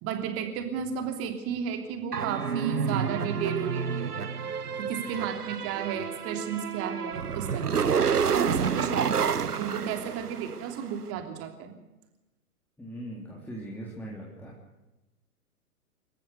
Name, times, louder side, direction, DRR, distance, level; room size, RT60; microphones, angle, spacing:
voice 1, 0.0-4.3 4.8-8.0 8.3-11.8, right 7 dB, 30° right, 5 dB, 3.2 m, -33 dB
sound 1, 2.1-10.8, right 6 dB, 85° right, 0.9 m, -29 dB
voice 2, 12.8-14.6, right 1 dB, 5° left, -4 dB, 3.4 m, -40 dB
26.5 x 14.5 x 6.8 m, 1.0 s
figure-of-eight pair, 110°, 45 cm